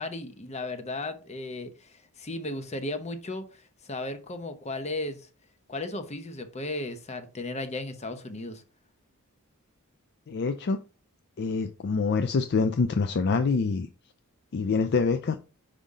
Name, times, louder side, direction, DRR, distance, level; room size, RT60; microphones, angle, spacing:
voice 1, 0.0-3.4 3.9-5.2 5.7-8.6, left 2 dB, 30° left, 0.8 m, -35 dB
voice 2, 10.3-10.8 11.4-13.9 14.5-15.4, left 4 dB, 50° left, 0.4 m, -25 dB
5.6 x 5.0 x 3.7 m
head